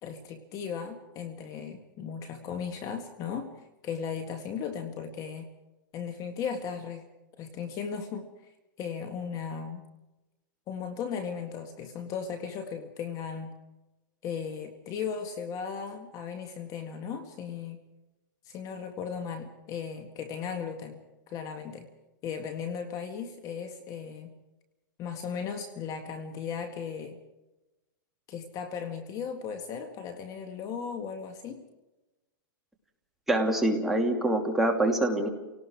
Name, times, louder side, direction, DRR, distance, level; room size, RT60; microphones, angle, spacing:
voice 1, 0.0-3.5 3.8-5.5 5.9-7.0 7.4-8.5 8.8-9.8 10.7-13.5 14.2-17.8 18.5-21.0 21.3-21.9 22.2-24.3 25.0-27.2 28.3-31.6, left 6 dB, 35° left, 7 dB, 1.8 m, -36 dB
voice 2, 33.3-35.3, right 1 dB, 5° right, 0 dB, 2.8 m, -25 dB
29.5 x 18.5 x 4.8 m, 1.0 s
supercardioid pair, 145°, 11 cm